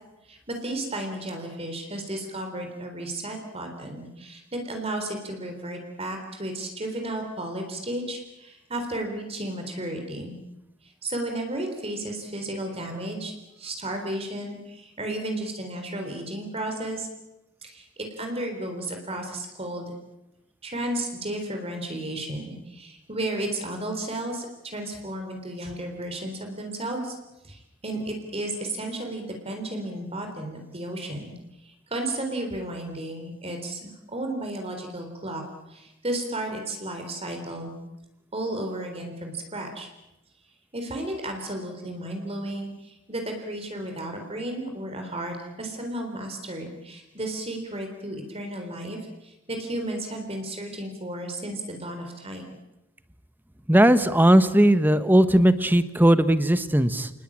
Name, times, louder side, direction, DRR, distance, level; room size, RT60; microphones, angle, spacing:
voice 1, 0.3-10.4 11.0-17.1 17.6-19.9 20.6-27.2 27.4-31.3 31.6-35.4 35.7-37.7 38.3-39.9 40.7-52.4, right 1 dB, 30° right, 4 dB, 4.0 m, -33 dB
voice 2, 53.7-57.1, right 1 dB, 10° right, 12 dB, 1.2 m, -18 dB
29.5 x 19.5 x 8.8 m, 0.94 s
head